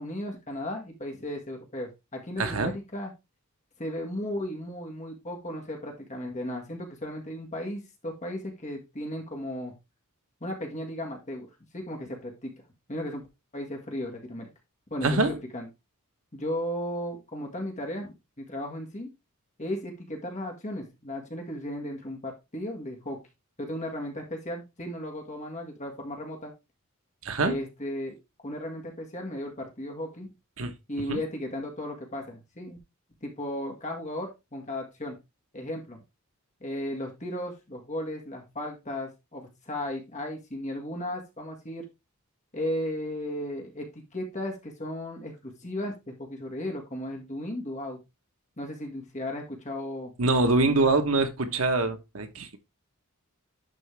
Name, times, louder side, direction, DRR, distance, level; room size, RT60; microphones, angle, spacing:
voice 1, 0.0-3.1 3.8-9.7 10.4-12.5 12.9-13.2 13.5-14.5 14.9-15.7 16.3-19.1 19.6-23.2 23.6-26.5 27.4-28.2 28.4-30.3 30.9-32.8 33.2-35.2 35.5-36.0 36.6-41.9 42.5-48.0 48.6-50.1 50.9-51.0, left 1 dB, 35° left, 1.8 m, -35 dB
voice 2, 2.4-2.7 15.0-15.4 27.2-27.6 30.6-30.7 31.1-31.2 50.2-52.6, right 3 dB, 75° right, 1.2 m, -24 dB
11.0 x 4.2 x 3.4 m
head